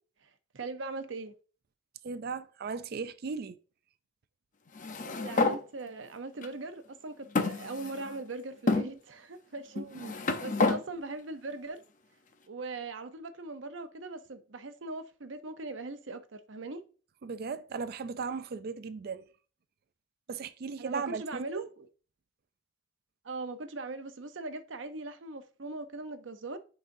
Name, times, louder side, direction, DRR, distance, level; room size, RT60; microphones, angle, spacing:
voice 1, 0.5-1.3 5.0-9.8 10.4-11.8 12.5-16.8 20.8-21.9 23.2-26.6, right 3 dB, 75° right, 0.8 m, -40 dB
voice 2, 2.0-3.6 9.7-10.1 17.2-19.3 20.3-21.4, right 5 dB, 55° right, 0.4 m, -37 dB
sound 1, 4.7-5.6 6.4-6.5 7.3-8.2 8.7-8.9 9.7-10.8, left 3 dB, 45° left, 0.7 m, -29 dB
9.6 x 4.0 x 2.7 m
head